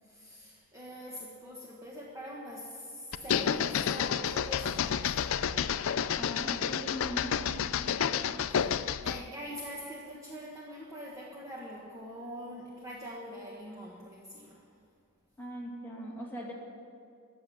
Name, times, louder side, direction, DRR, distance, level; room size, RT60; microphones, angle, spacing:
voice 1, 0.0-5.6 7.7-14.7, equal, 15° right, -4 dB, 1.3 m, -44 dB
sound 1, 3.1-9.3, left 8 dB, 65° left, 0.4 m, -30 dB
voice 2, 6.1-7.6 15.4-16.5, equal, 10° left, -4 dB, 2.5 m, -40 dB
14.5 x 7.7 x 10.0 m, 2.4 s
head